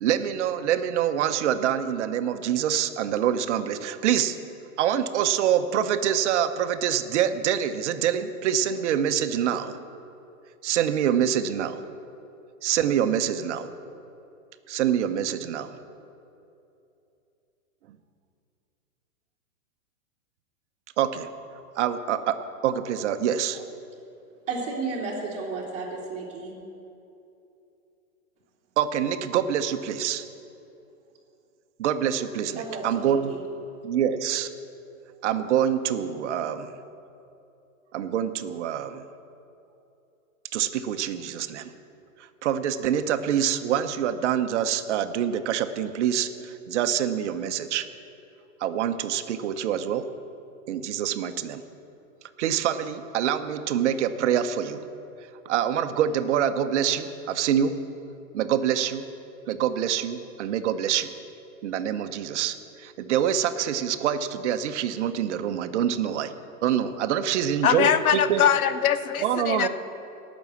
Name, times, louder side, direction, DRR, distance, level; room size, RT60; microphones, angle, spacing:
voice 1, 0.0-4.4 4.8-9.8 10.6-11.8 12.6-13.7 14.7-15.7 21.0-21.3 21.8-23.6 28.8-30.2 31.8-33.3 33.8-34.5 35.2-36.7 37.9-39.0 40.5-41.7 42.2-47.9 48.6-50.1 50.7-51.6 52.4-54.8 55.4-57.8 58.3-59.1 59.5-61.1 61.6-66.3 66.6-68.4 69.2-69.7, right 9 dB, 55° right, 10 dB, 0.9 m, -25 dB
voice 2, 24.5-26.5 32.5-33.4, right 3 dB, 15° right, -7 dB, 2.8 m, -33 dB
voice 3, 67.6-69.7, left 9 dB, 85° left, 12 dB, 1.0 m, -22 dB
18.5 x 6.3 x 7.0 m, 2.7 s
hypercardioid pair, 145°, 42 cm